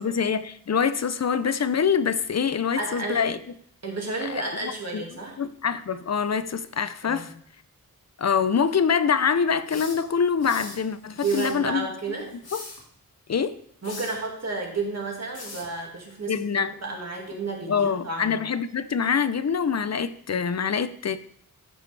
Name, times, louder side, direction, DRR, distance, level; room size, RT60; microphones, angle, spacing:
voice 1, 0.0-3.4 4.3-4.4 4.9-5.0 5.4-7.3 8.2-11.9 12.5-12.6 13.3-13.6 16.3-16.7 17.7-21.2, left 6 dB, 50° left, 0.5 m, -25 dB
voice 2, 2.8-3.3 3.8-5.4 7.0-7.2 11.1-12.3 13.8-18.4, right 3 dB, 45° right, 2.2 m, -31 dB
sound 1, 9.7-10.8 11.2-11.6 12.3-12.8 13.8-14.2 15.3-15.7, left 3 dB, 90° left, 1.9 m, -40 dB
13.5 x 5.0 x 3.3 m
wide cardioid pair, 110°, 36 cm